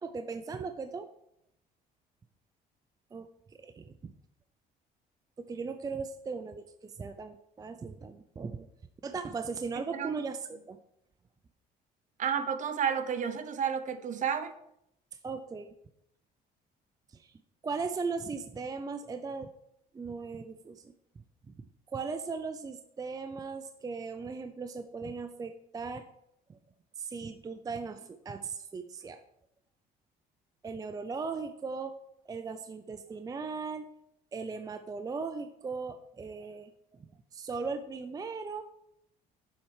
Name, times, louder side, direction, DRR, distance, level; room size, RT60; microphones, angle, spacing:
voice 1, 0.0-1.1 3.1-3.3 3.6-3.8 5.4-8.7 9.0-10.8 15.2-15.7 17.1-17.3 17.6-19.5 19.9-20.9 21.5-21.6 21.9-26.1 26.5-26.6 27.0-29.2 30.6-32.0 32.3-33.9 34.3-36.7 37.3-38.6, right 4 dB, 20° right, 8 dB, 0.4 m, -38 dB
voice 2, 12.2-14.5, right 7 dB, 45° right, 10 dB, 0.8 m, -31 dB
7.2 x 4.4 x 4.9 m, 0.77 s
cardioid pair, 110°, 17 cm